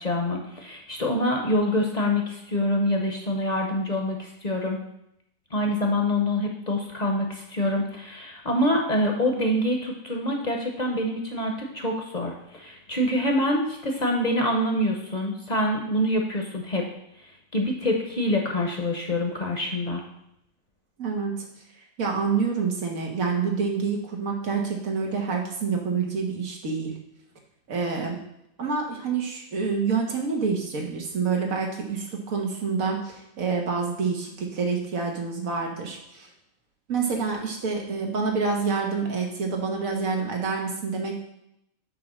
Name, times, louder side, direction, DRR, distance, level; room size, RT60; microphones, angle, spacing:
voice 1, 0.0-4.8 5.5-16.9 17.2-20.0, left 1 dB, 35° left, 1 dB, 0.8 m, -26 dB
voice 2, 21.0-21.5 22.0-26.9 27.7-28.2 28.6-36.3 36.9-41.1, right 5 dB, 85° right, 1 dB, 1.7 m, -27 dB
7.7 x 3.4 x 6.1 m, 0.78 s
omnidirectional pair, 1.4 m